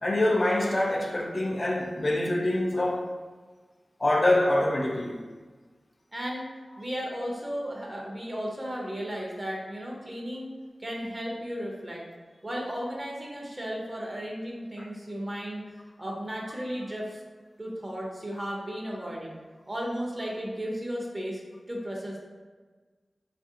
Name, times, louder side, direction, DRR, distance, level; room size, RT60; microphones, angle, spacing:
voice 1, 0.0-3.1 4.0-5.2 14.8-14.9, left 1 dB, 45° left, 0.4 m, -25 dB
voice 2, 6.1-6.5 6.8-12.0 12.4-15.7 16.0-17.2 17.6-19.4 19.7-21.4 21.7-22.2, equal, 30° right, 0.7 m, -34 dB
2.7 x 2.5 x 2.7 m
wide cardioid pair, 60°, 0 cm